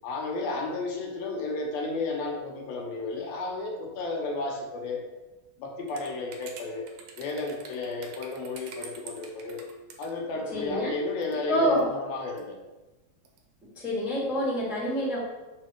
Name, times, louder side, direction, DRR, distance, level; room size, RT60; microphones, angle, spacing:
voice 1, 0.0-5.0 5.6-6.9 7.2-9.6 10.0-12.6, left 3 dB, 80° left, 0 dB, 2.9 m, -33 dB
sound 1, 5.9-10.1 11.2-11.5 11.8-11.9 12.4-12.5 13.2-13.4, right 5 dB, 70° right, 1.9 m, -46 dB
voice 2, 10.5-10.9 11.5-11.8 13.7-15.2, equal, ahead, -6 dB, 1.5 m, -26 dB
6.7 x 5.6 x 4.5 m, 1.1 s
omnidirectional pair, 4.2 m